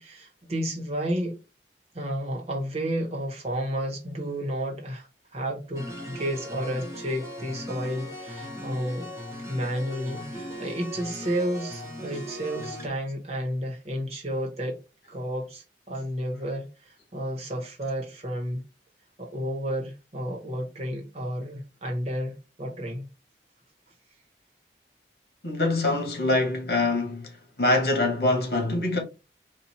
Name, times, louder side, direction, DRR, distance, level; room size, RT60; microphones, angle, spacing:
voice 1, 0.0-1.4 1.9-9.1 9.5-14.8 15.1-18.6 19.2-23.1, equal, 35° right, 1.2 m, -31 dB
sound 1, 5.7-12.9, equal, 15° right, 1.1 m, -38 dB
voice 2, 25.4-27.3 27.6-29.0, left 2 dB, 60° left, 1.6 m, -24 dB
4.4 x 2.6 x 4.2 m
head